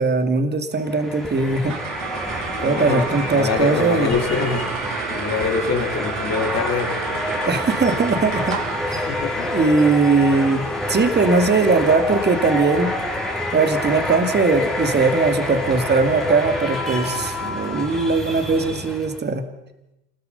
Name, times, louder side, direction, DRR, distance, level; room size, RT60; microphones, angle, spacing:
voice 1, 0.0-1.8 2.6-4.1 7.5-8.6 8.9-9.1 9.4-12.9 13.5-19.4, right 4 dB, 25° right, 8 dB, 2.6 m, -20 dB
sound 1, 0.8-19.2, left 1 dB, ahead, 3.9 m, -27 dB
sound 2, 1.4-12.1, right 15 dB, 70° right, 1.2 m, -33 dB
voice 2, 2.5-4.7 5.1-7.1 9.1-9.8, left 5 dB, 35° left, 3 dB, 4.6 m, -25 dB
27.0 x 20.5 x 5.6 m, 0.91 s
hypercardioid pair, 85°, 43 cm